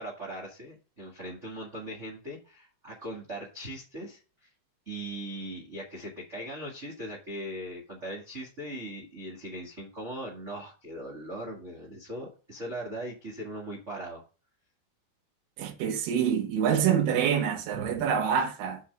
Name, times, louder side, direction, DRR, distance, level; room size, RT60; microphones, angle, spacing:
voice 1, 0.0-4.5 4.8-14.2 17.7-18.0, right 1 dB, 55° right, 0.7 m, -39 dB
voice 2, 15.6-18.8, right 8 dB, 80° right, 3.3 m, -26 dB
5.7 x 5.5 x 6.3 m
omnidirectional pair, 4.6 m